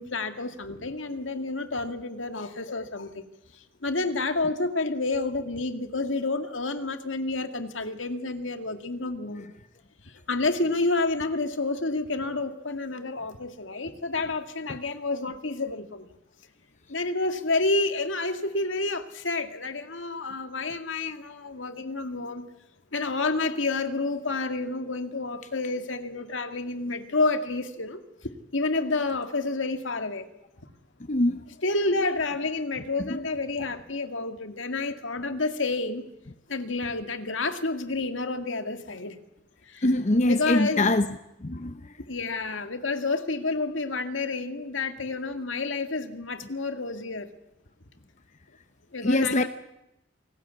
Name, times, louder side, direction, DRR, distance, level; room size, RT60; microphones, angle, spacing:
voice 1, 0.0-3.2 3.5-9.5 10.1-16.1 16.9-22.5 22.9-30.3 31.6-36.0 36.5-39.2 39.6-39.9 40.3-40.9 42.0-47.3 48.9-49.5, left 3 dB, 85° left, 2.1 m, -29 dB
voice 2, 31.1-31.4 33.1-33.3 39.8-41.1 41.4-41.8 49.0-49.4, left 1 dB, 40° left, 0.9 m, -23 dB
27.5 x 19.5 x 8.3 m
head